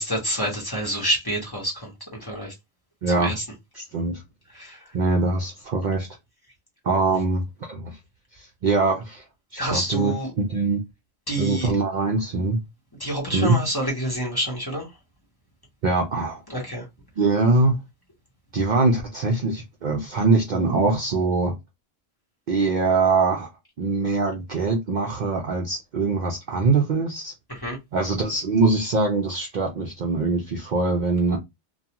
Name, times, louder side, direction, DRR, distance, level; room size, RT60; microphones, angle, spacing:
voice 1, 0.0-2.5 3.2-3.4 4.5-4.8 9.6-10.3 11.3-11.7 13.0-14.9 16.5-16.8 27.5-27.8, equal, 20° left, 0.9 m, -27 dB
voice 2, 3.0-3.3 3.7-4.2 4.9-6.1 6.8-7.4 7.7-8.0 8.3-9.2 9.5-10.8 11.4-12.6 13.3-13.6 15.8-16.4 17.2-17.8 18.5-21.6 22.5-23.5 23.8-27.3 27.9-31.4, right 3 dB, 55° right, 0.6 m, -23 dB
2.4 x 2.3 x 2.8 m
omnidirectional pair, 1.1 m